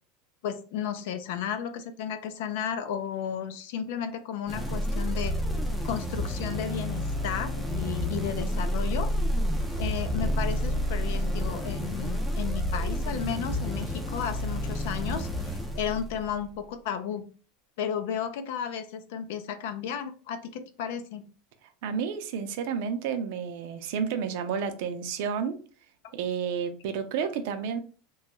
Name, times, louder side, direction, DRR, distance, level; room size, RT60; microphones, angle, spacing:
voice 1, 0.4-5.4 5.8-9.1 9.8-17.3 17.8-21.3, left 8 dB, 65° left, 9 dB, 0.5 m, -33 dB
sound 1, 4.5-16.4, equal, ahead, 0.4 m, -30 dB
voice 2, 21.8-25.6 26.1-27.8, right 7 dB, 60° right, 8 dB, 0.5 m, -31 dB
3.0 x 2.3 x 2.9 m, 0.37 s
supercardioid pair, 165°, 0 cm